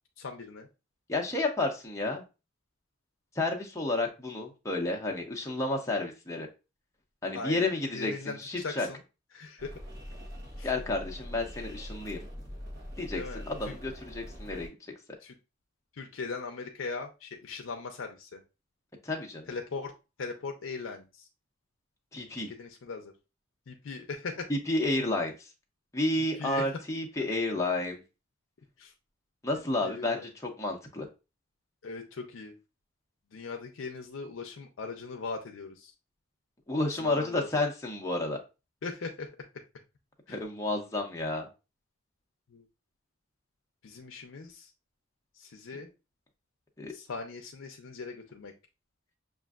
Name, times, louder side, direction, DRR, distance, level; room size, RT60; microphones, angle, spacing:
voice 1, 0.2-0.7 7.3-9.0 9.3-9.7 10.6-10.7 13.1-13.7 15.2-15.3 15.9-18.4 19.5-19.9 20.2-21.3 22.3-23.1 23.7-24.4 26.4-26.7 28.8-28.9 29.8-30.3 31.8-32.5 33.3-35.9 37.0-37.5 38.8-39.3 40.3-40.4 42.5-42.7 43.8-44.7 45.3-45.9 46.9-48.5, left 4 dB, 70° left, 3 dB, 0.5 m, -39 dB
voice 2, 1.1-2.2 3.3-6.5 7.2-8.9 10.6-12.3 13.0-13.2 13.5-14.7 19.0-19.5 22.1-22.5 24.5-25.5 25.9-28.0 29.4-31.1 36.7-38.4 40.3-41.5 46.8-46.9, left 2 dB, 15° left, 1 dB, 0.6 m, -31 dB
sound 1, 9.6-14.7, equal, 50° right, 1.0 m, -43 dB
6.1 x 2.5 x 2.3 m, 0.29 s
head